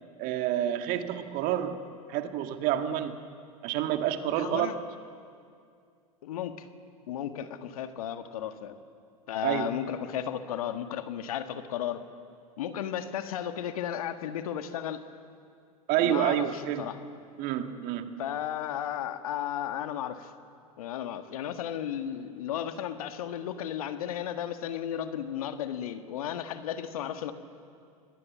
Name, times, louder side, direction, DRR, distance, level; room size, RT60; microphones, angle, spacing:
voice 1, 0.2-3.2 3.6-4.7 9.4-9.7 15.9-17.0 17.4-18.2, right 11 dB, 50° right, 8 dB, 1.8 m, -29 dB
voice 2, 4.4-4.7 6.2-6.7 7.1-8.7 9.3-12.0 12.6-15.0 16.0-17.0 18.2-20.3 20.8-27.3, left 10 dB, 70° left, 9 dB, 1.6 m, -34 dB
26.5 x 20.5 x 7.4 m, 2.3 s
hypercardioid pair, 90°, 19 cm